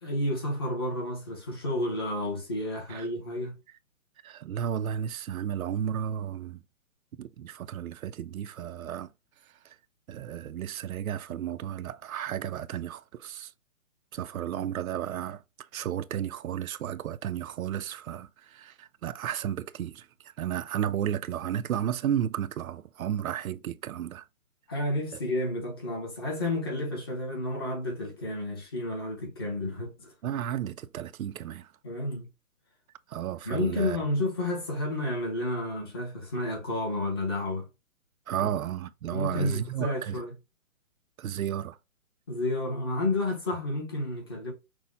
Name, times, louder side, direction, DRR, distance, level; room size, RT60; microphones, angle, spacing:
voice 1, 0.0-3.6 24.7-30.1 31.8-32.3 33.5-37.7 38.4-38.5 39.1-40.3 42.3-44.5, left 1 dB, 20° left, 0.8 m, -31 dB
voice 2, 4.2-6.6 7.1-9.1 9.6-9.8 10.1-13.5 14.1-24.3 30.2-31.7 33.1-34.0 38.3-40.2 41.2-41.8, right 10 dB, 75° right, 0.6 m, -33 dB
6.1 x 2.1 x 3.6 m
hypercardioid pair, 170°, 42 cm